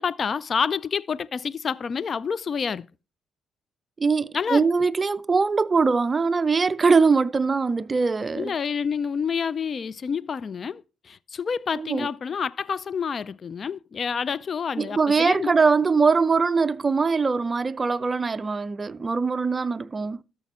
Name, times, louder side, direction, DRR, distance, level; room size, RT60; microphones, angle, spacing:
voice 1, 0.0-2.9 4.3-4.6 8.4-15.5, left 6 dB, 45° left, 0.4 m, -28 dB
voice 2, 4.0-8.5 11.7-12.1 14.8-20.2, right 4 dB, 30° right, 0.5 m, -22 dB
12.5 x 6.8 x 4.2 m
cardioid pair, 90°, 0 cm